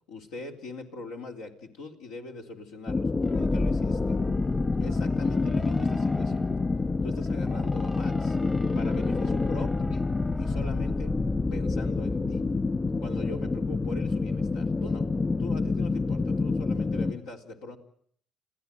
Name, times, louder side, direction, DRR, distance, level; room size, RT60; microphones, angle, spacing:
voice 1, 0.1-4.2 4.8-6.5 7.0-8.4 8.8-10.1 10.4-11.1 11.5-12.5 13.0-15.1 15.4-17.8, left 3 dB, 90° left, 2 dB, 3.7 m, -42 dB
sound 1, 2.9-17.1, left 3 dB, 30° left, 2.3 m, -27 dB
sound 2, 3.2-13.0, left 1 dB, 15° left, 1.0 m, -36 dB
28.0 x 15.5 x 9.3 m, 0.63 s
supercardioid pair, 75°, 0 cm